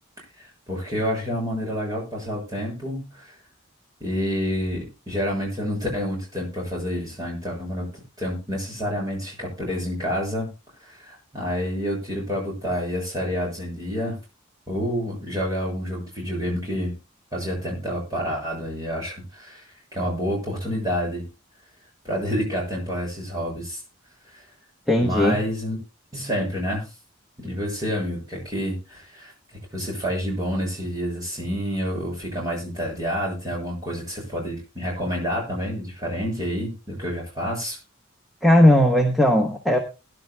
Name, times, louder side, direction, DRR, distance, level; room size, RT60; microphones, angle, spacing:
voice 1, 0.4-3.4 4.0-7.9 8.2-10.5 10.8-14.2 14.7-16.9 17.3-21.3 22.0-23.8 24.3-24.5 25.0-25.8 26.1-26.9 27.4-29.3 29.7-37.8, equal, 20° right, -1 dB, 7.0 m, -28 dB
voice 2, 24.9-25.4 38.4-39.8, left 1 dB, ahead, 2 dB, 1.2 m, -17 dB
21.5 x 11.0 x 2.3 m, 0.29 s
head